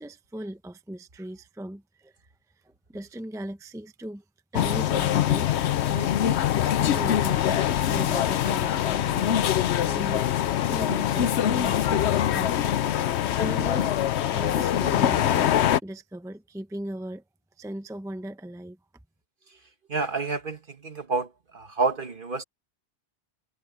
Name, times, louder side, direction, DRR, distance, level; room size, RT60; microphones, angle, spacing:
voice 1, 0.0-2.1 2.6-4.2 4.5-5.6 5.9-9.4 9.9-10.4 10.7-14.0 14.3-15.5 15.8-17.2 17.6-18.8, right 1 dB, 5° right, 0.7 m, -38 dB
sound 1, 4.5-15.8, left 11 dB, 75° left, 0.9 m, -24 dB
voice 2, 19.9-22.4, right 4 dB, 50° right, 1.8 m, -29 dB
omnidirectional pair, 1.1 m